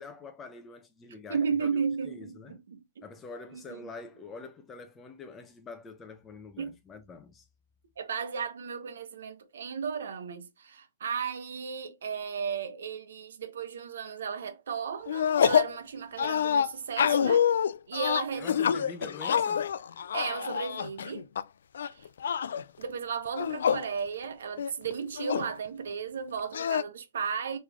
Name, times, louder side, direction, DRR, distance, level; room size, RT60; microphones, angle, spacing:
voice 1, 0.0-2.6 3.0-7.5 18.4-19.7, left 4 dB, 10° left, 0.6 m, -45 dB
voice 2, 1.1-3.0 3.5-3.8 6.6-6.8 8.0-17.5 17.9-18.5 20.1-21.3 21.9-22.1 22.8-27.6, right 6 dB, 90° right, 1.0 m, -34 dB
sound 1, 15.1-15.8 16.2-21.4 21.7-22.6 23.3-23.9 24.2-24.3 24.6-25.5 26.5-26.8, left 8 dB, 85° left, 0.3 m, -27 dB
3.6 x 3.2 x 3.4 m
hypercardioid pair, 170°, 0 cm